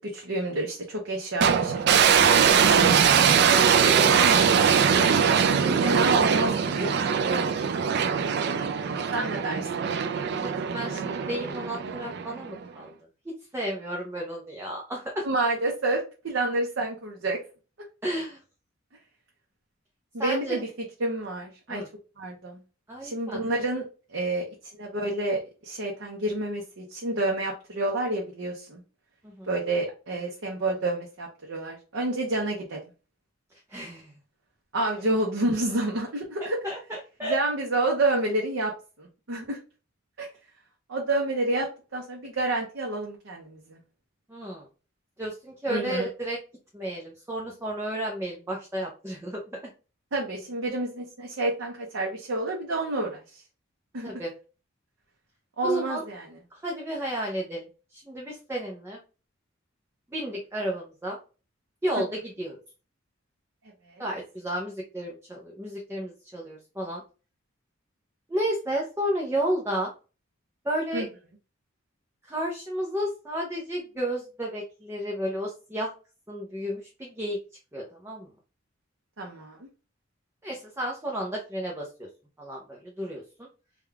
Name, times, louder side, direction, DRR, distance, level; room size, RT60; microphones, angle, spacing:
voice 1, 0.0-4.5 5.3-7.5 9.1-9.7 15.2-17.4 20.1-20.7 21.0-21.8 22.2-22.6 23.0-23.8 24.1-24.5 24.7-28.8 29.5-32.8 34.7-36.6 37.2-38.7 39.0-39.6 40.2-40.3 40.9-43.8 45.7-46.1 50.1-53.4 53.9-54.1 55.6-56.3 61.9-62.0 64.0-64.1 70.9-71.1 79.2-79.6, right 2 dB, 75° right, 0 dB, 0.7 m, -29 dB
sound 1, 1.4-12.6, right 7 dB, 55° right, 0.4 m, -22 dB
voice 2, 10.4-12.9 13.5-15.2 18.0-18.4 20.2-20.6 21.7-21.9 22.9-23.4 29.4-29.5 33.7-34.1 36.4-37.4 44.3-44.7 45.2-46.4 46.7-49.6 54.0-54.3 55.6-56.0 56.6-57.7 57.9-59.0 60.1-61.2 61.8-62.6 64.0-67.0 68.3-69.9 70.6-71.1 72.2-75.9 76.3-77.4 77.7-78.3 80.4-82.1 82.4-83.5, right 1 dB, 15° right, -3 dB, 0.6 m, -32 dB
3.6 x 2.3 x 3.3 m, 0.34 s
head